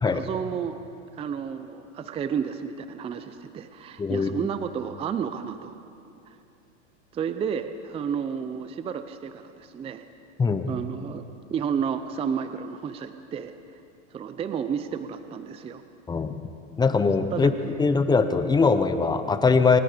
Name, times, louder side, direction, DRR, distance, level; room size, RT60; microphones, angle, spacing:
voice 1, 0.1-0.8 1.2-5.8 6.3-6.4 7.1-10.0 10.7-11.2 11.5-13.5 14.1-15.8 17.3-17.5, right 7 dB, 15° right, 10 dB, 0.6 m, -31 dB
voice 2, 4.0-4.3 10.4-10.8 16.1-16.4 16.8-17.5 17.8-19.8, left 4 dB, 10° left, 10 dB, 0.9 m, -21 dB
27.5 x 21.0 x 5.1 m, 2.6 s
supercardioid pair, 135°, 37 cm